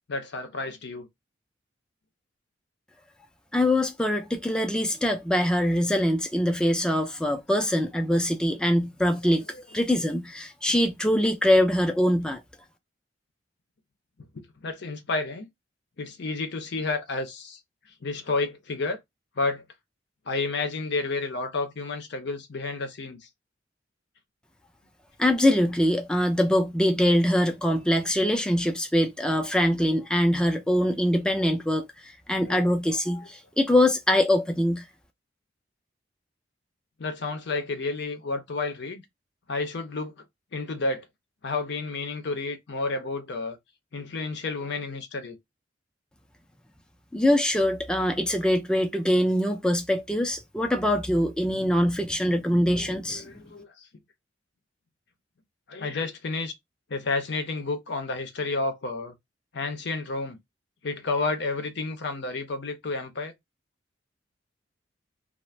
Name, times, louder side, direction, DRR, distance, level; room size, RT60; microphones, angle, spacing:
voice 1, 0.1-1.1 9.2-9.6 14.3-15.5 16.0-17.6 18.0-19.0 19.4-19.6 20.3-23.3 32.5-32.6 32.9-33.0 37.0-39.0 39.5-40.2 40.5-41.1 41.4-43.6 43.9-45.4 52.7-53.9 55.7-56.5 56.9-59.1 59.5-60.4 60.8-63.3, left 3 dB, 65° left, 0.6 m, -31 dB
voice 2, 3.5-12.4 25.2-34.8 47.1-53.3, left 1 dB, 5° left, 0.4 m, -23 dB
2.4 x 2.0 x 3.1 m
head